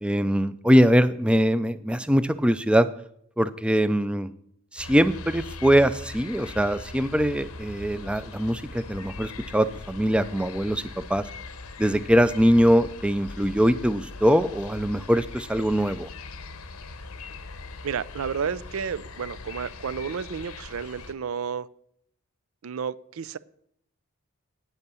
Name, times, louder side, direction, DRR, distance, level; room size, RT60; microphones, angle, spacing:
voice 1, 0.0-2.9 3.4-4.3 4.7-11.2 11.8-16.1, equal, 5° right, 0.4 m, -22 dB
sound 1, 4.8-21.1, left 3 dB, 85° left, 1.0 m, -41 dB
voice 2, 17.8-21.7 22.6-23.4, right 6 dB, 70° right, 0.4 m, -31 dB
9.2 x 8.2 x 6.9 m
head